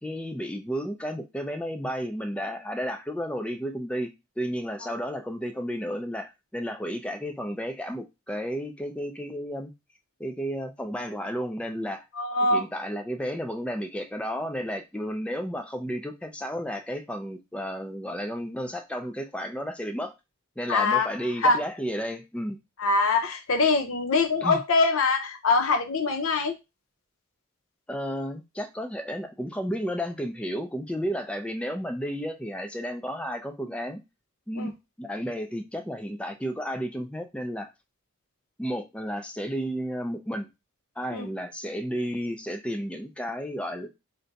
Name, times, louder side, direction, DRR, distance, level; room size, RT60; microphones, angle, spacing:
voice 1, 0.0-4.1 4.4-9.7 10.2-12.0 12.5-20.1 20.6-22.6 24.4-24.6 27.9-34.0 34.5-34.7 35.0-37.7 38.6-40.5 41.0-43.9, equal, 5° left, 0.3 m, -32 dB
voice 2, 12.2-12.6 20.7-21.1 21.4-21.6 22.8-26.5 34.6-34.7 41.1-41.3, left 3 dB, 90° left, 0.6 m, -23 dB
2.6 x 2.2 x 3.9 m
head